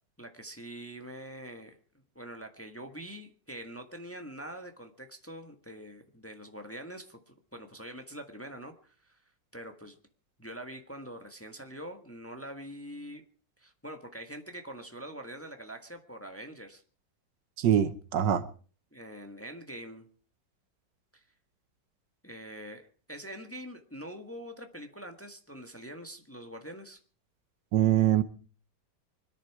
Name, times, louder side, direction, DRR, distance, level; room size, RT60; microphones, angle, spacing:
voice 1, 0.2-1.8 2.1-9.2 9.5-10.0 10.4-13.2 13.6-16.8 18.9-20.1 21.1-21.2 22.2-27.0, right 1 dB, 10° left, 1.3 m, -44 dB
voice 2, 17.6-18.4 27.7-28.2, right 11 dB, 75° right, 1.5 m, -24 dB
25.0 x 10.5 x 4.8 m
omnidirectional pair, 2.0 m